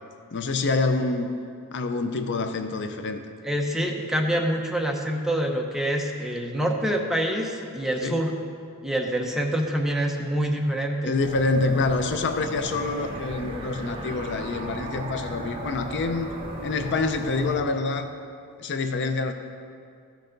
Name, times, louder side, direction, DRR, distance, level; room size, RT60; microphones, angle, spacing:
voice 1, 0.3-1.3 1.7-3.2 8.0-8.2 11.0-16.3 16.6-18.1 18.6-19.3, left 3 dB, 55° left, 7 dB, 0.5 m, -26 dB
voice 2, 3.4-8.3 8.8-11.1, right 1 dB, ahead, 1 dB, 0.7 m, -26 dB
sound 1, 11.2-17.6, right 1 dB, 25° right, 1.1 m, -36 dB
14.0 x 6.5 x 3.9 m, 2.4 s
head